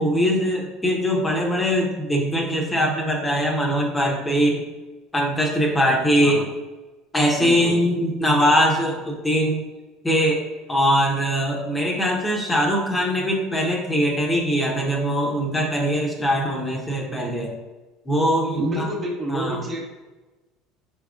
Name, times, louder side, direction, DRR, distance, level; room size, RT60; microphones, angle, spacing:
voice 1, 0.0-4.6 5.1-6.4 7.1-9.6 10.0-10.4 10.7-17.5 18.0-18.9 19.3-19.6, equal, 15° left, -1 dB, 0.8 m, -21 dB
voice 2, 7.4-7.7 18.6-19.8, right 1 dB, 35° right, -1 dB, 1.0 m, -28 dB
4.5 x 3.6 x 2.4 m, 1.2 s
supercardioid pair, 90°, 0 cm